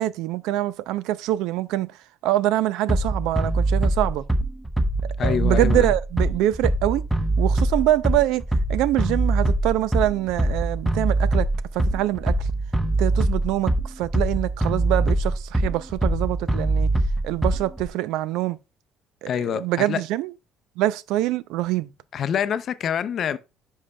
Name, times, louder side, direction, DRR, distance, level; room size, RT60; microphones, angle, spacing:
voice 1, 0.0-1.9 2.2-4.2 5.2-7.1 7.4-8.4 8.7-12.5 13.0-16.9 17.2-18.6 19.2-20.3 20.8-21.9, right 15 dB, 85° right, 0.4 m, -24 dB
Bass drum, 2.9-17.9, right 2 dB, ahead, 0.6 m, -22 dB
voice 2, 5.2-5.9 19.3-20.0 22.1-23.4, left 8 dB, 45° left, 0.5 m, -26 dB
9.9 x 5.5 x 2.2 m
cardioid pair, 145°, 0 cm